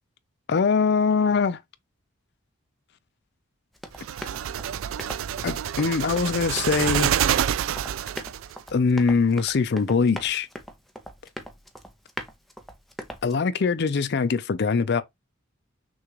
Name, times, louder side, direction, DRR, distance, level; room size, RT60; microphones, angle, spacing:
voice 1, 0.5-1.6 5.4-7.1 8.7-10.5 13.2-15.0, left 5 dB, 55° left, 0.5 m, -22 dB
Run, 3.7-13.4, equal, ahead, 0.7 m, -41 dB
sound 1, 4.0-8.5, right 9 dB, 80° right, 0.3 m, -27 dB
6.2 x 2.4 x 2.9 m
head